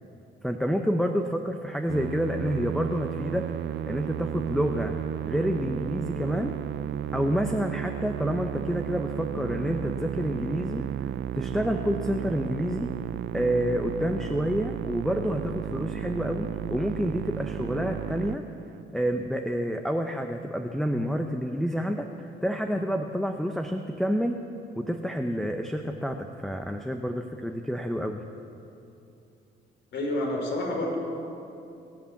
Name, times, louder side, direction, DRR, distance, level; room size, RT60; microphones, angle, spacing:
voice 1, 0.4-3.5 3.9-5.0 5.2-6.6 7.1-12.9 13.3-18.5 18.9-24.4 24.8-28.2, equal, ahead, 4 dB, 0.8 m, -28 dB
Musical instrument, 1.9-19.0, right 11 dB, 65° right, 0.4 m, -33 dB
voice 2, 29.9-31.0, left 1 dB, 65° left, 0 dB, 3.8 m, -28 dB
24.0 x 8.2 x 7.2 m, 2.8 s
cardioid pair, 90°, 20 cm